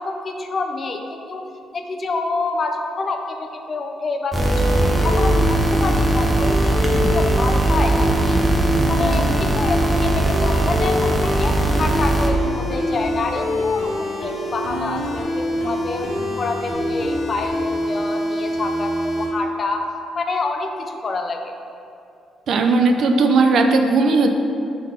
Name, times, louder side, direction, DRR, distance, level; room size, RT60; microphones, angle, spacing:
voice 1, 0.0-1.4 1.7-4.8 5.0-8.4 8.9-19.9 20.1-21.5, left 3 dB, 45° left, 4 dB, 0.6 m, -27 dB
sound 1, 4.3-19.3, left 1 dB, 70° left, 1.4 m, -25 dB
sound 2, 4.3-12.3, right 2 dB, 15° right, 0.6 m, -19 dB
voice 2, 22.5-24.4, right 3 dB, 65° right, 5 dB, 0.5 m, -16 dB
4.5 x 3.9 x 5.7 m, 2.6 s
cardioid pair, 90°, 0 cm